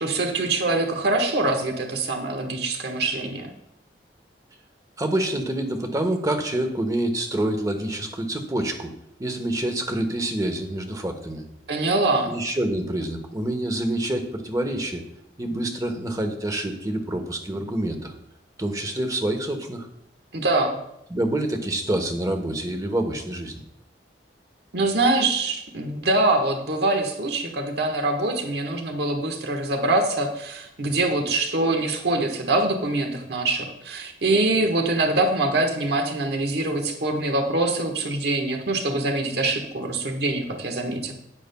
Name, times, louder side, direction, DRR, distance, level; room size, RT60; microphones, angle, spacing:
voice 1, 0.0-3.5 11.7-12.3 20.3-20.8 24.7-41.1, right 2 dB, 65° right, 3 dB, 1.3 m, -24 dB
voice 2, 5.0-8.9 9.2-11.5 12.3-15.0 15.4-18.1 18.6-19.9 21.1-23.6, right 1 dB, 20° right, 5 dB, 1.1 m, -27 dB
12.5 x 9.4 x 2.2 m, 0.81 s
head